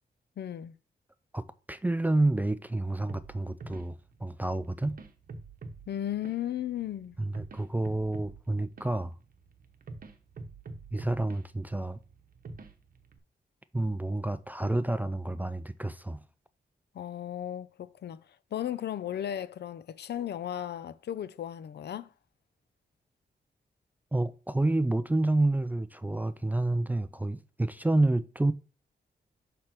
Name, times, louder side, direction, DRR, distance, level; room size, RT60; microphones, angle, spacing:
voice 1, 0.4-0.8 5.9-7.2 16.9-18.2 18.5-22.1, left 11 dB, 70° left, 0.4 m, -35 dB
voice 2, 1.3-5.0 7.2-9.1 10.9-12.0 13.7-16.2 24.1-28.5, right 2 dB, 10° right, 0.3 m, -29 dB
sound 1, 3.1-13.2, right 3 dB, 50° right, 0.9 m, -47 dB
5.9 x 3.3 x 5.8 m
wide cardioid pair, 110°, 18 cm